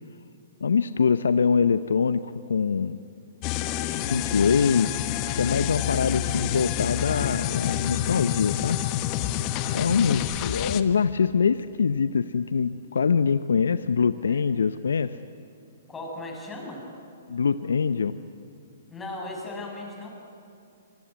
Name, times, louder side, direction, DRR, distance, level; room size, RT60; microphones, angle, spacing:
voice 1, 0.6-3.0 4.0-5.1 5.3-8.8 9.7-15.2 17.3-18.2, left 6 dB, 75° left, 13 dB, 0.7 m, -24 dB
sound 1, 3.4-10.8, left 12 dB, 35° left, 1.2 m, -28 dB
voice 2, 3.6-3.9 14.3-14.4 15.9-16.8 18.9-20.1, left 2 dB, 15° left, 0 dB, 6.7 m, -37 dB
25.0 x 21.5 x 9.6 m, 2.5 s
hypercardioid pair, 125°, 0 cm